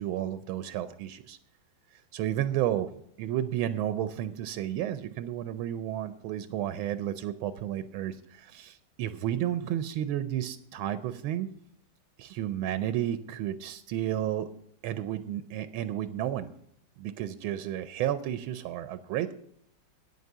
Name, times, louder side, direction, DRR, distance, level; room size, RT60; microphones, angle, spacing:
voice 1, 0.0-1.4 1.9-2.9 3.2-11.5 12.2-14.5 14.8-16.5 17.0-19.3, right 11 dB, 85° right, 12 dB, 1.4 m, -32 dB
9.5 x 8.1 x 7.8 m, 0.70 s
omnidirectional pair, 2.2 m